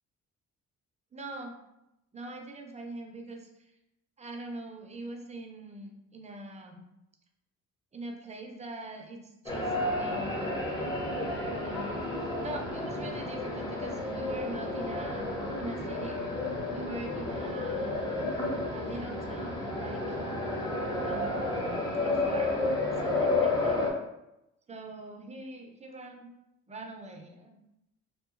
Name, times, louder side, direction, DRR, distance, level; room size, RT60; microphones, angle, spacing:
voice 1, 1.1-1.5 2.1-3.7 4.2-6.8 7.9-9.7 10.0-10.8 11.6-15.3 15.6-16.2 16.7-18.0 18.7-20.2 21.0-22.6 23.0-23.8 24.7-26.3 26.7-27.6, right 1 dB, 25° right, 2 dB, 0.4 m, -43 dB
sound 1, 9.5-23.9, left 2 dB, 15° left, 0.7 m, -31 dB
2.8 x 2.3 x 2.4 m, 0.89 s
cardioid pair, 90°, 30 cm